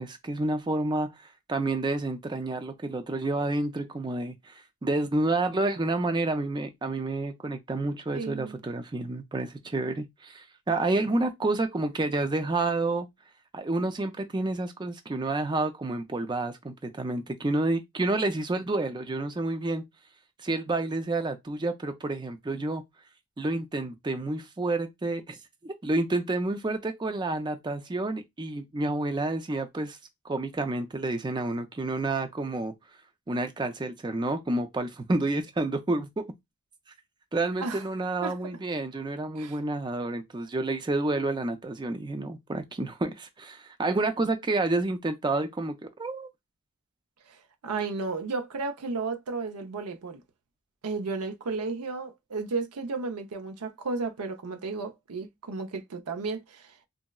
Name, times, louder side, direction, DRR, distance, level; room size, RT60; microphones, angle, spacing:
voice 1, 0.0-13.1 13.5-19.8 20.4-22.8 23.4-25.4 25.6-30.0 30.2-32.7 33.3-36.3 37.3-46.3, right 2 dB, 20° right, 0.4 m, -29 dB
voice 2, 8.1-8.6 37.6-37.8 38.2-38.4 39.4-39.6 47.3-47.4 47.6-50.2 50.8-56.8, right 4 dB, 90° right, 0.6 m, -33 dB
3.6 x 2.0 x 2.2 m
head